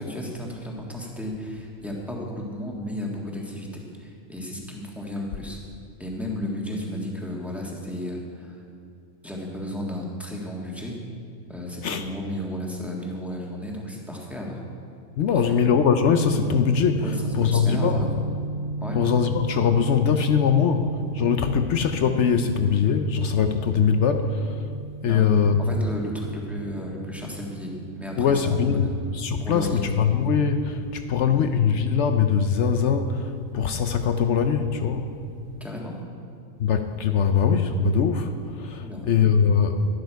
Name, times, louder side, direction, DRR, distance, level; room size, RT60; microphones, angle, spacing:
voice 1, 0.0-5.6 6.0-8.6 9.2-10.9 11.5-14.6 15.3-15.5 17.0-18.1 18.8-19.0 25.1-25.3 25.7-28.9 29.4-29.8 31.3-31.5 35.6-36.0 38.8-39.1, left 1 dB, ahead, -2 dB, 1.5 m, -33 dB
voice 2, 15.2-18.0 18.9-24.6 25.0-25.7 28.2-35.1 36.6-39.8, left 6 dB, 65° left, 7 dB, 0.8 m, -22 dB
sound 1, 15.7-27.9, right 2 dB, 45° left, 1.1 m, -34 dB
12.0 x 11.5 x 4.6 m, 2.5 s
omnidirectional pair, 1.5 m